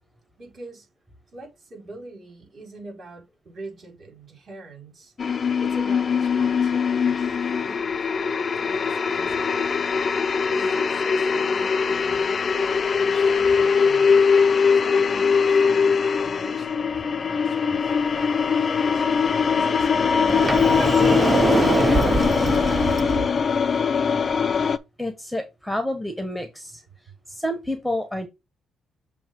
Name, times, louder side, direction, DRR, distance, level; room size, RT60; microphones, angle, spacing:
voice 1, 0.4-0.9 1.3-5.1 5.6-7.4 7.6-9.7 10.5-14.2 14.7-22.8, right 2 dB, 50° right, 4.6 m, -43 dB
sound 1, 5.2-24.8, left 6 dB, 40° left, 0.5 m, -21 dB
Sliding door, 20.3-23.3, right 3 dB, 25° right, 0.5 m, -23 dB
voice 2, 25.0-26.8 27.3-28.3, left 1 dB, ahead, 1.1 m, -29 dB
7.0 x 2.8 x 5.3 m
cardioid pair, 90°, 0 cm